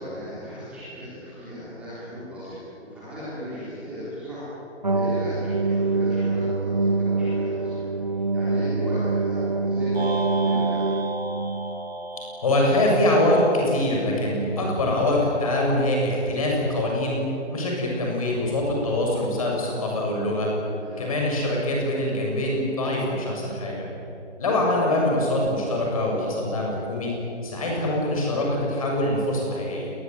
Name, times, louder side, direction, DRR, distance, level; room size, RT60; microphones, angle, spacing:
voice 1, 0.0-4.4 4.9-10.9 20.8-21.1 27.6-27.9, equal, 5° right, -12 dB, 3.7 m, -36 dB
sound 1, 4.8-11.9, right 3 dB, 35° right, 0.6 m, -25 dB
sound 2, 9.9-14.3, right 2 dB, 60° right, 6.1 m, -34 dB
voice 2, 12.4-17.2 17.5-20.5 21.0-23.8 24.4-27.1 27.4-29.9, left 1 dB, 30° left, -1 dB, 7.2 m, -24 dB
28.0 x 21.0 x 9.3 m, 2.9 s
hypercardioid pair, 175°, 35 cm